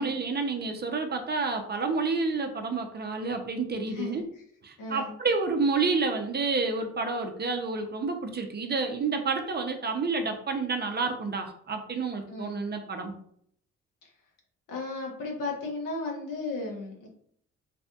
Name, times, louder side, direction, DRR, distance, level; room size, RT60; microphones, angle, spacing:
voice 1, 0.0-4.2 4.6-13.2, right 4 dB, 30° right, 5 dB, 0.6 m, -29 dB
voice 2, 3.9-4.2 4.8-5.1 12.3-12.6 14.7-17.1, left 3 dB, 70° left, -1 dB, 1.1 m, -34 dB
3.3 x 2.5 x 2.3 m, 0.65 s
hypercardioid pair, 50°, 34 cm